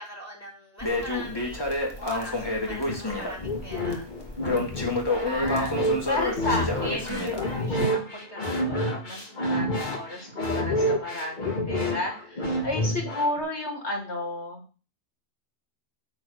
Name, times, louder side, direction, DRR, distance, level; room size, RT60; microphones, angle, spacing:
voice 1, 0.0-4.1 12.5-13.0, equal, 15° right, 0 dB, 2.5 m, -42 dB
Crackle, 0.8-7.8, left 2 dB, 20° left, 1.7 m, -30 dB
sound 1, 2.8-13.4, equal, 45° left, 1.7 m, -29 dB
voice 2, 5.2-14.6, left 1 dB, 70° left, 1 dB, 2.8 m, -32 dB
8.9 x 3.9 x 6.4 m, 0.36 s
omnidirectional pair, 1.2 m